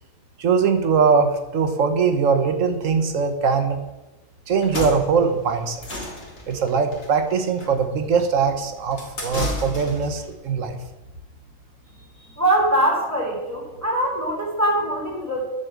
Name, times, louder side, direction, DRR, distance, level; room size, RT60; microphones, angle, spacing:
voice 1, 0.4-3.8 4.5-5.8 6.5-10.8, right 5 dB, 75° right, 7 dB, 1.5 m, -21 dB
sound 1, 4.5-10.2, left 1 dB, 60° left, 2.7 m, -33 dB
voice 2, 12.4-15.5, right 1 dB, 10° right, -4 dB, 3.6 m, -22 dB
11.0 x 6.6 x 7.5 m, 1.0 s
omnidirectional pair, 1.3 m